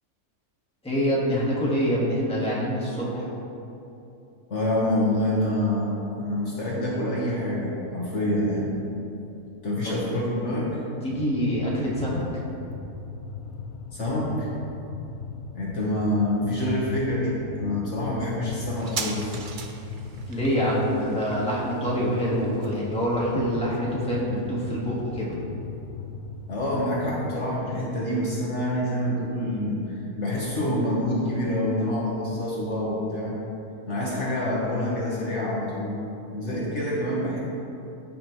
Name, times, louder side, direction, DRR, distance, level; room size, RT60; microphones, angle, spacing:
voice 1, 0.8-3.3 9.8-10.0 11.0-12.2 20.3-25.4, equal, 5° left, -6 dB, 1.5 m, -25 dB
voice 2, 4.5-8.8 9.6-10.8 13.9-14.5 15.5-19.4 26.5-33.4 33.8-36.0 36.3-37.4, left 1 dB, 50° left, -5 dB, 1.4 m, -27 dB
sound 1, 11.1-27.3, left 4 dB, 75° left, 1.1 m, -38 dB
sound 2, 18.8-25.9 26.1-26.2, right 5 dB, 55° right, 0.5 m, -40 dB
14.5 x 5.4 x 3.0 m, 2.8 s
omnidirectional pair, 1.6 m